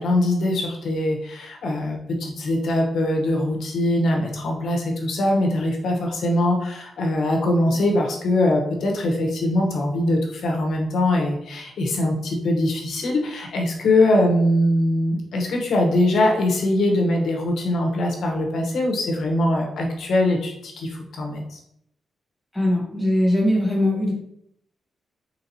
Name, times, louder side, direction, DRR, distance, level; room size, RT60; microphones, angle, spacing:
voice 1, 0.0-21.6, left 1 dB, 70° left, 1 dB, 0.9 m, -22 dB
voice 2, 22.5-24.1, left 1 dB, ahead, -4 dB, 1.5 m, -20 dB
4.0 x 3.8 x 2.8 m, 0.75 s
wide cardioid pair, 140°, 0 cm